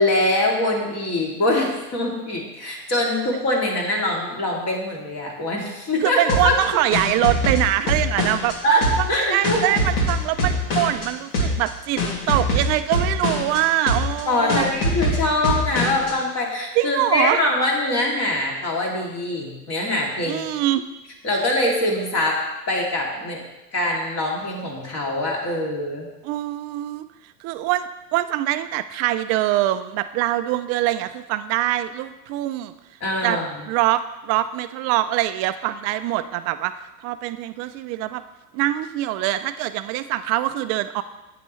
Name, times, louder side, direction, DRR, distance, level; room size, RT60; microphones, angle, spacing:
voice 1, 0.0-6.2 6.4-6.5 8.6-9.6 14.3-20.5 21.2-22.4 22.7-23.4 23.7-26.1 33.0-33.5, left 1 dB, 35° left, -1 dB, 2.5 m, -23 dB
voice 2, 6.0-8.6 9.2-12.0 12.3-14.6 16.7-17.4 20.2-20.8 26.2-27.1 27.4-32.7 33.2-33.4 33.7-36.7 37.0-38.2 38.5-41.0, right 14 dB, 35° right, 12 dB, 0.4 m, -23 dB
sound 1, 6.3-8.5 8.8-11.1 11.3-11.7 12.0-13.6 13.9-14.2 14.5-16.1, equal, 65° left, 2.5 m, -23 dB
8.6 x 8.3 x 3.1 m, 1.0 s
hypercardioid pair, 100°, 47 cm